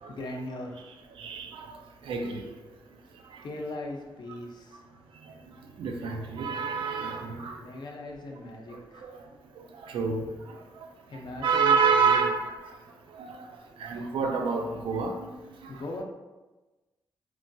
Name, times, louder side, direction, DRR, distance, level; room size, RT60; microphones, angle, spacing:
voice 1, 0.1-0.7 3.4-4.8 7.5-9.0 11.1-12.2 15.7-16.0, left 2 dB, 60° left, 0 dB, 0.6 m, -39 dB
voice 2, 1.2-1.7 2.0-2.5 5.8-7.6 9.0-9.1 9.8-10.9 11.4-12.5 13.1-13.5 13.8-15.3 15.6-15.7, right 5 dB, 85° right, 3 dB, 0.4 m, -28 dB
3.0 x 2.2 x 2.6 m, 1.1 s
cardioid pair, 75°, 9 cm